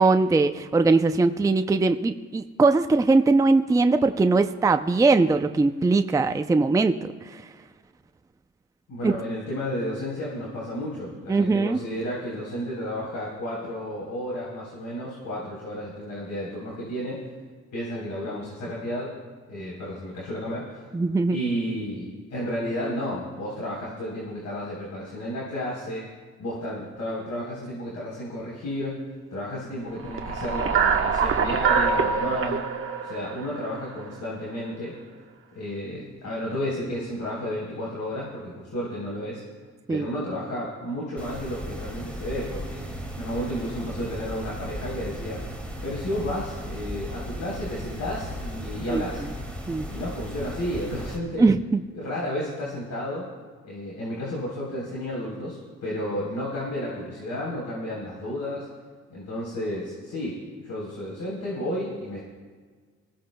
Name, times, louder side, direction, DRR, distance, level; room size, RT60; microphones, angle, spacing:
voice 1, 0.0-7.4 9.0-9.1 11.3-11.8 20.9-21.4 39.9-40.1 48.9-49.0 49.7-49.9 51.4-51.8, right 3 dB, 10° right, 8 dB, 0.5 m, -21 dB
voice 2, 8.9-17.2 17.7-19.1 19.5-20.8 21.3-26.1 26.4-29.0 29.3-32.7 33.0-35.0 35.6-39.4 39.9-42.9 43.2-45.4 45.8-49.2 49.9-51.4 51.9-53.3 53.6-58.7 59.1-62.2, equal, 65° left, -5 dB, 3.8 m, -32 dB
sound 1, 30.0-34.3, right 6 dB, 45° right, 1.1 m, -25 dB
sound 2, 41.2-51.2, equal, 5° left, 2.2 m, -36 dB
21.0 x 16.0 x 2.2 m, 1.5 s
cardioid pair, 90°, 30 cm